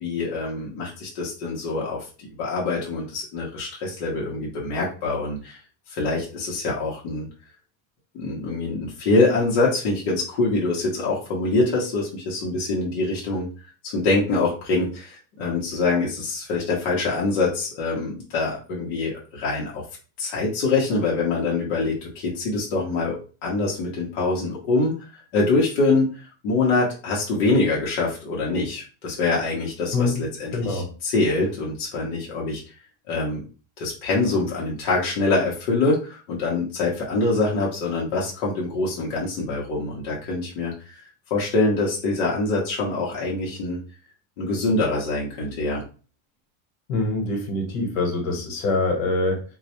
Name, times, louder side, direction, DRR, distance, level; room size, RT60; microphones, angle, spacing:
voice 1, 0.0-5.6 5.9-7.3 8.1-13.5 13.8-19.8 20.2-24.9 25.3-32.6 33.1-33.4 33.8-40.7 41.3-43.8 44.4-45.8, left 3 dB, 45° left, -4 dB, 0.7 m, -24 dB
voice 2, 30.5-30.9 46.9-49.4, left 2 dB, 75° left, 2 dB, 1.1 m, -24 dB
2.3 x 2.0 x 2.8 m, 0.35 s
supercardioid pair, 175°, 42 cm